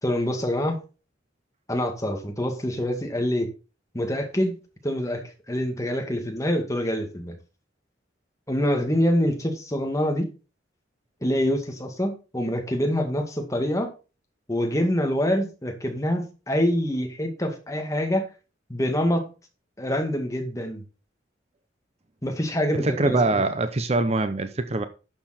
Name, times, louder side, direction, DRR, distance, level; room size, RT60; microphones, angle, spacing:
voice 1, 0.0-0.8 1.7-3.5 3.9-7.4 8.5-10.3 11.2-13.9 14.5-18.3 18.7-19.3 19.8-20.8 22.2-23.4, equal, 15° left, 2.1 m, -25 dB
voice 2, 22.8-24.8, right 2 dB, 35° right, 0.8 m, -23 dB
11.5 x 7.0 x 4.2 m
head